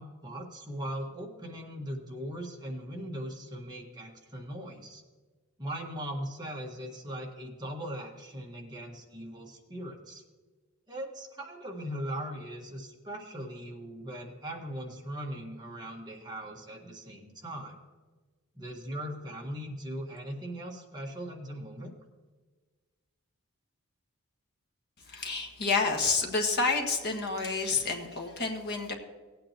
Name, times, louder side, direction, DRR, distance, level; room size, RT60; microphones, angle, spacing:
voice 1, 0.0-5.0 5.6-10.2 10.9-17.8 18.5-21.9, equal, 20° right, -1 dB, 1.6 m, -39 dB
voice 2, 25.1-28.9, left 4 dB, 50° left, 2 dB, 1.6 m, -29 dB
17.0 x 8.9 x 3.0 m, 1.4 s
head